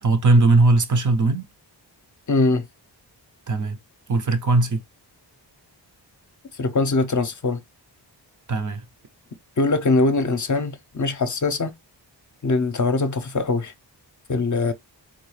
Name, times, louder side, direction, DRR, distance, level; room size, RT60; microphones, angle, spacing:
voice 1, 0.0-1.5 3.5-3.8 4.1-4.8 8.5-8.8, right 3 dB, 45° right, 0.5 m, -19 dB
voice 2, 2.3-2.6 6.6-7.6 9.6-11.7 12.4-13.7 14.3-14.7, left 3 dB, 45° left, 0.6 m, -22 dB
3.7 x 2.2 x 3.1 m
wide cardioid pair, 85°, 43 cm